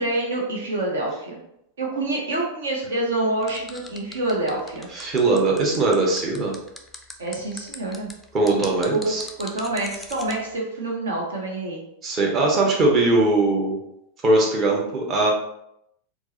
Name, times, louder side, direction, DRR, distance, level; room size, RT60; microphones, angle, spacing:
voice 1, 0.0-1.4 1.8-4.9 7.2-8.1 8.9-11.8, right 2 dB, 65° right, -1 dB, 0.7 m, -27 dB
sound 1, 3.4-10.3, left 2 dB, 5° left, 0.4 m, -40 dB
voice 2, 4.9-6.5 8.3-9.2 12.0-13.8 14.2-15.3, right 2 dB, 30° right, -1 dB, 0.8 m, -20 dB
4.4 x 2.0 x 2.8 m, 0.78 s
figure-of-eight pair, 90°, 0 cm